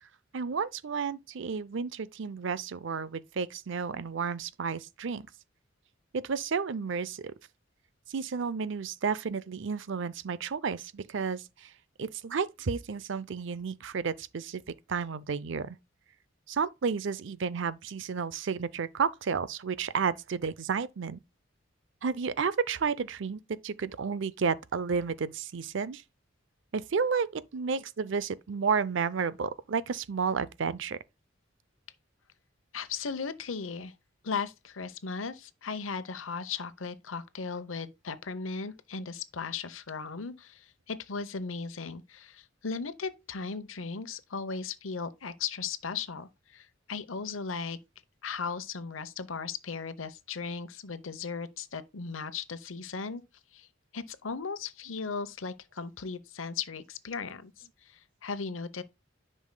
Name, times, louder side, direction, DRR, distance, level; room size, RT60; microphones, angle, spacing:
voice 1, 0.3-5.2 6.1-7.3 8.1-11.7 12.0-15.8 16.5-21.2 22.0-26.0 26.7-31.0, right 5 dB, 65° right, 0.5 m, -32 dB
voice 2, 32.7-33.9 34.2-47.8 48.2-53.2 53.5-53.7 53.9-58.8, left 5 dB, 90° left, 0.8 m, -37 dB
10.5 x 5.5 x 2.2 m
head